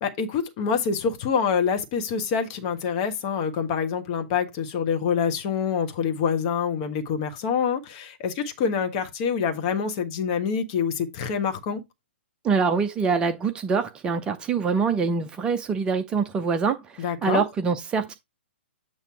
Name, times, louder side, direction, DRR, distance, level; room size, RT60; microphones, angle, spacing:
voice 1, 0.0-11.8 17.0-17.4, left 6 dB, 30° left, 1.3 m, -26 dB
voice 2, 12.4-18.1, right 5 dB, 15° right, 0.6 m, -25 dB
8.3 x 3.0 x 4.6 m
figure-of-eight pair, 120°, 6 cm